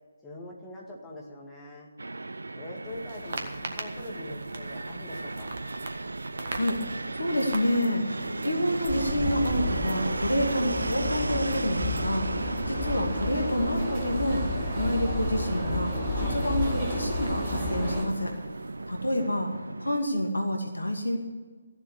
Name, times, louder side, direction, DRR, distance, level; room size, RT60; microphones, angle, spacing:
voice 1, 0.2-1.9 2.6-5.5, left 1 dB, 10° left, -4 dB, 2.1 m, -43 dB
Fixed-wing aircraft airplane, 2.0-20.0, right 2 dB, 65° right, 0.4 m, -35 dB
sound 1, 2.8-19.2, right 2 dB, 50° right, 1.5 m, -44 dB
voice 2, 6.5-12.2 12.7-18.3 18.9-19.5 19.8-21.2, left 1 dB, 75° left, 2 dB, 2.3 m, -28 dB
sound 2, 8.8-18.0, left 1 dB, 15° right, 5.0 m, -31 dB
14.5 x 7.5 x 8.5 m, 1.4 s
figure-of-eight pair, 145°, 0 cm